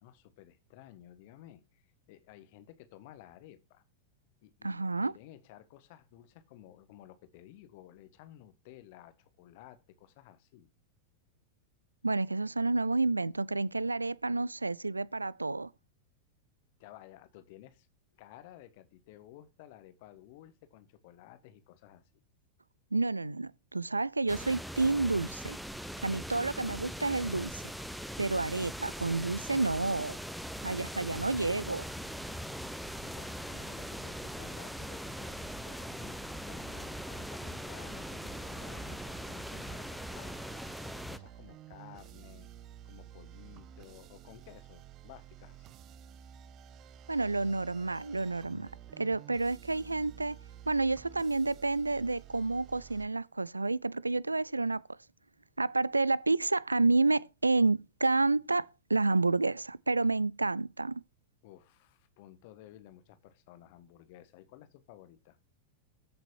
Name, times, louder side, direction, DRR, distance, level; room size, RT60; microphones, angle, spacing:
voice 1, 0.0-3.8 4.4-10.7 16.8-17.9 18.2-22.0 33.0-40.7 41.1-42.5 42.8-45.6 61.4-65.4, left 13 dB, 50° left, 1.5 m, -54 dB
voice 2, 4.6-5.1 12.0-15.7 22.9-25.6 26.0-27.6 28.2-30.2 30.6-31.8 47.1-48.7 49.0-50.4 50.7-54.8 55.6-61.0, right 3 dB, 80° right, 0.4 m, -29 dB
sound 1, 24.3-41.2, equal, ahead, 0.9 m, -41 dB
sound 2, 38.3-53.1, right 10 dB, 35° right, 0.6 m, -52 dB
14.0 x 6.2 x 2.9 m
figure-of-eight pair, 90°, 0 cm